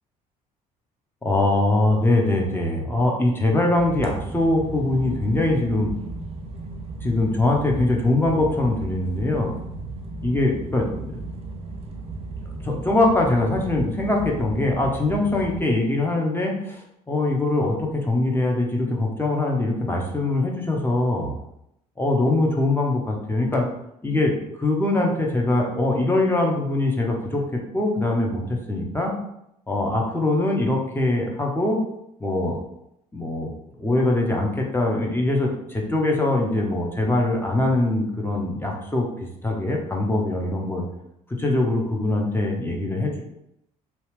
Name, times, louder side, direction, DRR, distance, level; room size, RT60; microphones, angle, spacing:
voice 1, 1.2-5.9 7.0-9.6 10.2-11.2 12.6-21.3 22.0-23.7 24.0-29.1 29.7-31.8 32.2-32.6 33.1-33.5 33.8-39.1 39.4-40.8 41.3-43.2, left 2 dB, 10° left, 0 dB, 0.8 m, -22 dB
sound 1, 3.8-15.6, right 2 dB, 30° right, 0.6 m, -35 dB
2.8 x 2.4 x 3.2 m, 0.79 s
hypercardioid pair, 55°, 19 cm